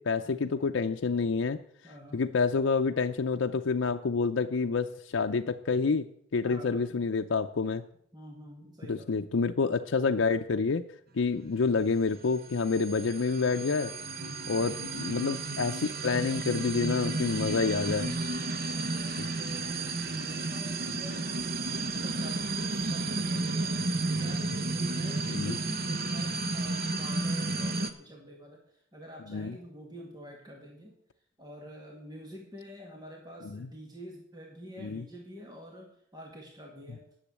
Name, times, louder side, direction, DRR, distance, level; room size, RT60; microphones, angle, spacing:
voice 1, 0.0-1.6 2.1-6.1 6.3-7.8 8.9-10.8 11.1-13.9 14.5-18.2 19.2-19.3 25.3-25.6 29.3-29.5 33.5-33.7 34.8-35.0, left 4 dB, 85° left, 5 dB, 0.5 m, -28 dB
voice 2, 1.8-2.2 6.4-7.1 8.1-9.1 14.2-14.7 18.7-21.3 21.6-23.9 24.2-30.9 31.4-37.0, equal, 20° right, -1 dB, 1.9 m, -47 dB
sound 1, 12.2-27.9, right 3 dB, 50° right, 0.9 m, -32 dB
10.0 x 7.1 x 8.2 m, 0.68 s
head